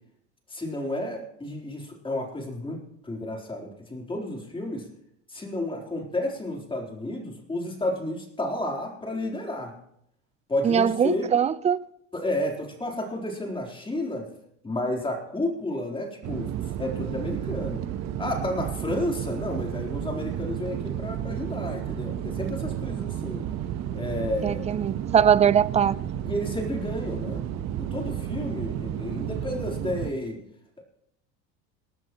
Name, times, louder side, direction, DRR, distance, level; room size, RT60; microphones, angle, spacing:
voice 1, 0.5-2.8 3.0-4.9 5.3-9.7 10.5-11.3 12.1-14.3 14.6-16.5 16.8-17.8 18.2-23.4 23.9-24.7 26.2-27.4 27.8-30.4, left 1 dB, 15° left, 3.8 m, -31 dB
voice 2, 10.6-11.8 24.4-25.9, right 8 dB, 20° right, 0.4 m, -21 dB
sound 1, 16.2-30.1, right 11 dB, 45° right, 1.1 m, -32 dB
18.5 x 15.0 x 3.1 m
supercardioid pair, 100°, 36 cm